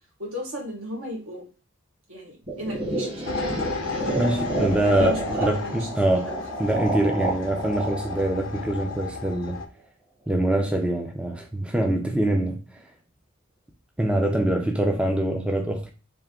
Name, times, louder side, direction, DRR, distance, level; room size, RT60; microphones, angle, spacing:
voice 1, 0.2-1.5 2.1-3.1 4.0-4.2 4.7-5.9 6.3-6.7, equal, 75° right, 1.4 m, -35 dB
sound 1, 2.5-9.3, right 2 dB, 25° right, 1.0 m, -30 dB
sound 2, 3.3-9.7, left 4 dB, 65° left, 0.6 m, -34 dB
voice 2, 4.2-6.3 6.6-9.6 10.3-12.8 14.0-15.9, right 1 dB, 5° right, 0.4 m, -24 dB
3.4 x 2.8 x 3.6 m
head